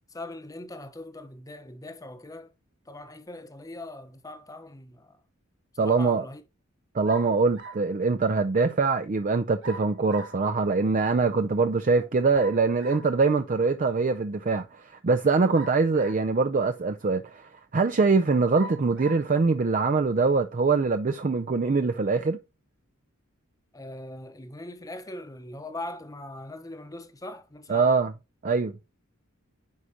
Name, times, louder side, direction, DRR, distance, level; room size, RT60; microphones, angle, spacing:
voice 1, 0.1-2.5 2.9-5.2 5.8-6.4 23.7-28.0, left 2 dB, 15° left, 0.9 m, -41 dB
voice 2, 5.8-6.2 6.9-22.4 27.7-28.1 28.4-28.7, right 4 dB, 40° right, 0.5 m, -23 dB
sound 1, 7.1-7.9 9.6-10.4 12.3-13.1 15.5-16.4 17.1-17.2 18.5-19.3, right 2 dB, 65° right, 2.3 m, -41 dB
9.5 x 4.9 x 2.8 m
head